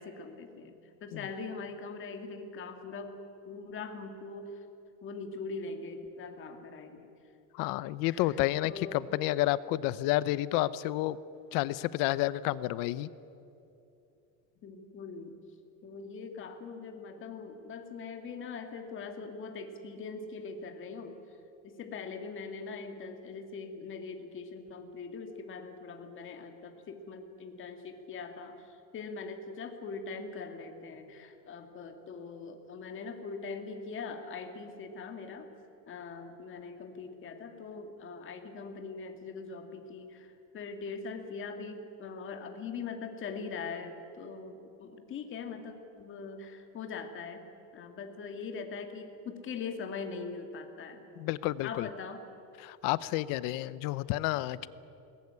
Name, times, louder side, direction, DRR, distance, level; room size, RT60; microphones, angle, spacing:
voice 1, 0.0-3.2 3.5-4.6 5.0-7.1 8.1-8.4 8.6-9.0 14.6-15.4 15.8-21.2 21.6-28.6 28.9-35.5 35.9-47.4 47.7-51.0 51.6-52.2, left 4 dB, 30° left, 6 dB, 2.1 m, -42 dB
voice 2, 7.5-11.2 11.5-13.1 51.2-51.9 52.6-54.7, left 16 dB, 55° left, 18 dB, 0.8 m, -30 dB
21.5 x 19.5 x 9.8 m, 2.8 s
cardioid pair, 165°, 41 cm